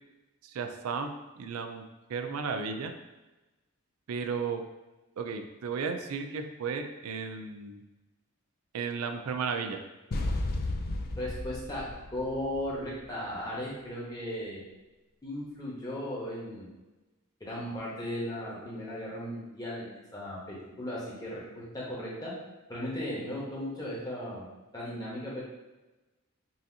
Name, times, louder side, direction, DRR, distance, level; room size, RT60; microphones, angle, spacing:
voice 1, 0.4-1.8 2.1-2.9 4.1-4.6 5.2-7.8 8.7-9.8, right 5 dB, 90° right, 6 dB, 0.4 m, -34 dB
sound 1, 10.1-13.1, left 2 dB, 45° left, 0.4 m, -33 dB
voice 2, 11.2-11.8 12.1-14.6 15.2-16.7 17.4-22.3 22.7-24.4 24.7-25.4, left 1 dB, 15° left, -6 dB, 1.1 m, -36 dB
5.5 x 2.7 x 2.7 m, 1.1 s
head